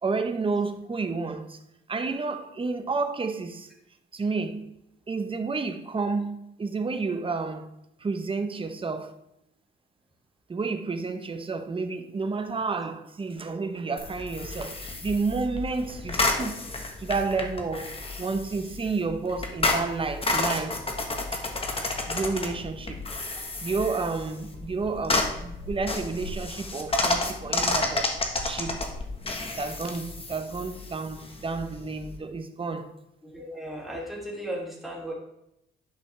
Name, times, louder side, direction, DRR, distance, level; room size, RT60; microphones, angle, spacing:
voice 1, 0.0-1.6 1.9-3.7 4.1-4.8 5.1-7.7 8.0-9.2 10.5-16.6 17.0-20.9 22.1-23.0 23.6-28.1 28.4-28.9 29.6-32.9, right 4 dB, 25° right, 0.9 m, -30 dB
sound 1, 14.0-32.2, left 2 dB, 30° left, 1.3 m, -31 dB
voice 2, 33.2-35.1, right 1 dB, ahead, 2.9 m, -36 dB
10.5 x 5.4 x 3.4 m
cardioid pair, 90°, 20 cm